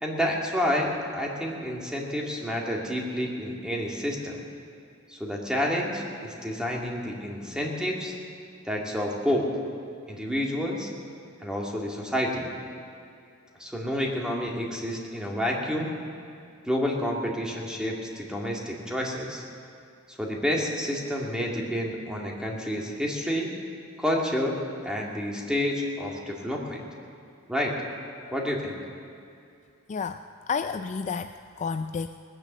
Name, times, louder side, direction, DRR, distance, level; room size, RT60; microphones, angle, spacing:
voice 1, 0.0-4.4 5.1-8.1 8.7-9.5 10.1-10.9 11.4-12.5 13.6-15.9 16.6-19.4 20.1-23.5 24.0-26.8 27.5-27.7 28.3-28.8, equal, 5° right, -2 dB, 2.1 m, -29 dB
voice 2, 29.9-32.1, left 5 dB, 35° left, 9 dB, 0.3 m, -31 dB
19.5 x 10.0 x 7.2 m, 2.5 s
head